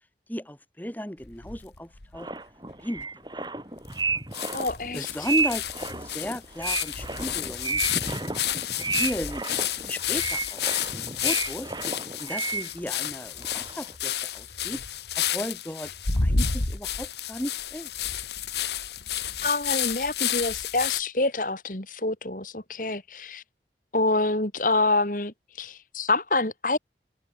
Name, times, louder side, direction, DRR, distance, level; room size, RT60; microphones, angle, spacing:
voice 1, 0.3-2.3 2.8-3.1 3.4-3.5 4.5-4.6 4.9-8.1 8.9-10.6 10.9-11.7 12.2-14.8 15.2-15.9 16.2-17.9, equal, 10° left, 1.8 m, -35 dB
sound 1, 1.2-2.2 2.7-2.8 3.0-3.1 3.9-4.0 4.3-21.0, left 8 dB, 75° left, 2.0 m, -30 dB
sound 2, 2.1-13.1 13.4-13.9, right 4 dB, 25° right, 7.7 m, -32 dB
voice 2, 4.5-5.3 19.4-23.4 23.9-26.8, left 2 dB, 50° left, 3.2 m, -27 dB
head